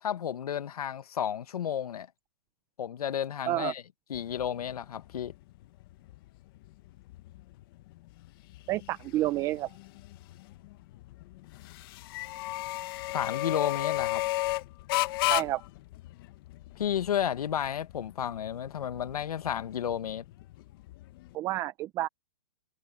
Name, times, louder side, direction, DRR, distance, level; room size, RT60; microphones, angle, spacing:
voice 1, 0.0-2.1 2.8-3.8 4.1-5.3 13.1-14.2 16.8-20.2, left 9 dB, 75° left, 1.5 m, -32 dB
sound 1, 4.1-21.3, left 19 dB, 35° left, 1.3 m, -36 dB
voice 2, 8.7-9.7 15.3-15.6 21.3-22.1, right 16 dB, 15° right, 0.5 m, -29 dB
hypercardioid pair, 155°, 19 cm